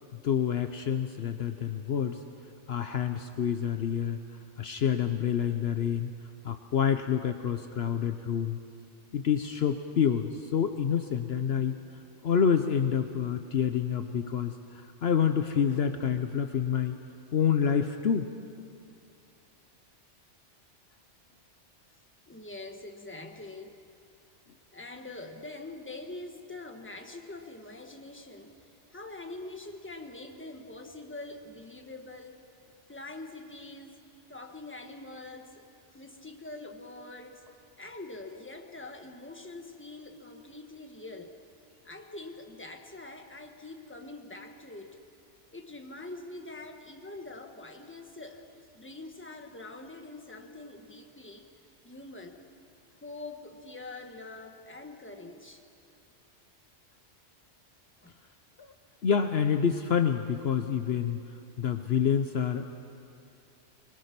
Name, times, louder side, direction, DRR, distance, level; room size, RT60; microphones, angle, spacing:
voice 1, 0.2-2.2 2.7-4.2 4.6-6.1 6.4-8.6 9.1-11.8 12.2-17.0 17.3-18.3 59.0-61.2 61.6-62.7, left 7 dB, 60° left, 8 dB, 1.0 m, -27 dB
voice 2, 22.3-23.8 24.7-28.5 28.9-32.4 32.9-37.4 37.8-41.3 41.8-45.0 45.5-48.4 48.7-51.5 51.8-52.4 53.0-55.6 58.0-58.2, left 2 dB, 10° left, 4 dB, 1.4 m, -44 dB
23.5 x 21.0 x 6.0 m, 2.5 s
omnidirectional pair, 1.2 m